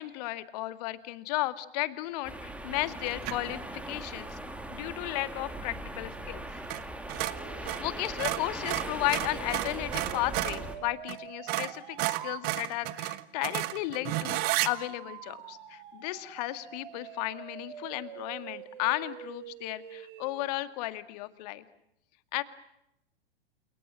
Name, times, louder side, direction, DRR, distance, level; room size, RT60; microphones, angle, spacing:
voice 1, 0.0-4.4 4.7-6.6 7.6-21.6 22.3-22.4, left 18 dB, 40° left, 13 dB, 2.0 m, -34 dB
sound 1, 2.2-10.8, right 1 dB, 5° right, 3.1 m, -40 dB
sound 2, 3.2-3.5 6.6-6.8 7.1-10.6 11.1-11.2 11.5-14.7, right 18 dB, 30° right, 1.2 m, -32 dB
sound 3, 7.2-12.5 14.6-20.5, right 10 dB, 50° right, 4.1 m, -46 dB
29.5 x 28.5 x 6.3 m, 0.84 s
figure-of-eight pair, 105°, 31 cm